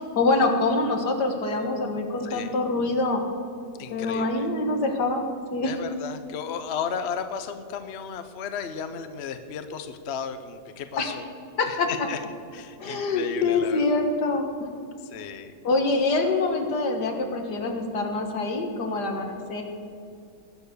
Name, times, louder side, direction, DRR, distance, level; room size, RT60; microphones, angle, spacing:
voice 1, 0.2-3.2 3.9-5.3 5.5-5.8 11.0-11.2 11.6-11.9 12.8-14.8 15.6-19.6, left 3 dB, 75° left, 4 dB, 2.1 m, -25 dB
voice 2, 3.8-4.5 5.6-11.3 11.6-12.2 12.5-13.8 15.0-15.5, left 7 dB, 50° left, 9 dB, 0.9 m, -34 dB
20.0 x 7.0 x 6.8 m, 2.4 s
omnidirectional pair, 1.8 m